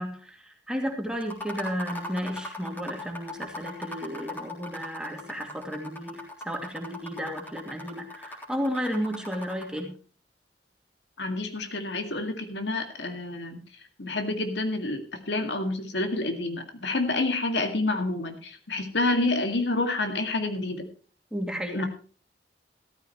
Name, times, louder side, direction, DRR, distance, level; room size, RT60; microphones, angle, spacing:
voice 1, 0.0-10.0 21.3-21.9, equal, 5° right, 2 dB, 2.4 m, -33 dB
sound 1, 1.2-9.8, left 1 dB, 10° left, 3.5 m, -39 dB
voice 2, 11.2-13.6 14.0-15.0 15.3-20.9 21.7-21.9, left 2 dB, 80° left, 6 dB, 2.1 m, -28 dB
14.5 x 14.0 x 3.1 m, 0.40 s
head